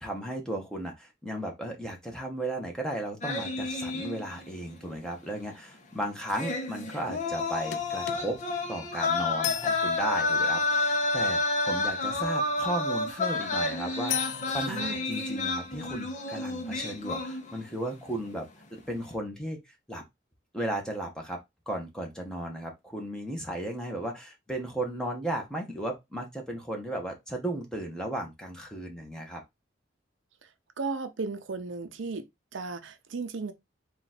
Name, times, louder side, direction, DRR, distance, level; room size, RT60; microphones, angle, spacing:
voice 1, 0.0-8.4 8.7-18.5 18.9-19.6 19.9-20.0 20.5-21.4 21.7-29.4, right 1 dB, 5° left, 1.0 m, -35 dB
sound 1, 3.2-4.6 4.9-5.0 6.3-17.8 18.1-18.4, left 2 dB, 40° left, 0.7 m, -30 dB
sound 2, 7.7-10.6 14.1-14.7, left 11 dB, 60° left, 0.4 m, -36 dB
voice 2, 14.7-15.0 30.8-32.2 32.5-33.5, right 4 dB, 80° right, 0.6 m, -35 dB
3.9 x 2.5 x 4.1 m
head